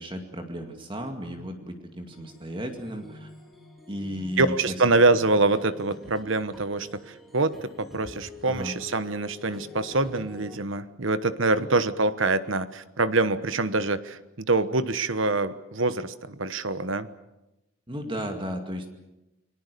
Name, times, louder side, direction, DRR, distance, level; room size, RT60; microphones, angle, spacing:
voice 1, 0.0-3.3 3.9-4.7 8.5-8.8 11.6-11.7 17.9-18.9, equal, 25° right, 4 dB, 2.3 m, -34 dB
sound 1, 2.1-10.6, left 3 dB, ahead, 3.5 m, -46 dB
voice 2, 4.4-17.1, right 3 dB, 65° right, 13 dB, 1.1 m, -25 dB
29.0 x 20.5 x 6.8 m, 0.97 s
head